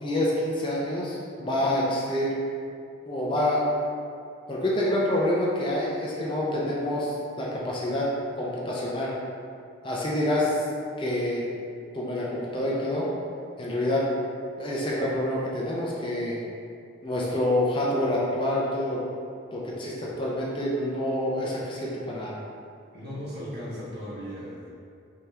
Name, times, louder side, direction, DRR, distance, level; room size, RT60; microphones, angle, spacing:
voice 1, 0.0-2.3 3.1-3.6 4.5-8.1 8.4-9.1 9.8-10.6 11.0-11.4 11.9-13.1 13.6-14.0 14.6-16.4 17.0-19.0 19.5-22.3, left 1 dB, 25° left, -5 dB, 0.5 m, -27 dB
voice 2, 22.9-24.7, equal, 50° right, -7 dB, 1.2 m, -37 dB
5.2 x 2.9 x 3.3 m, 2.4 s
head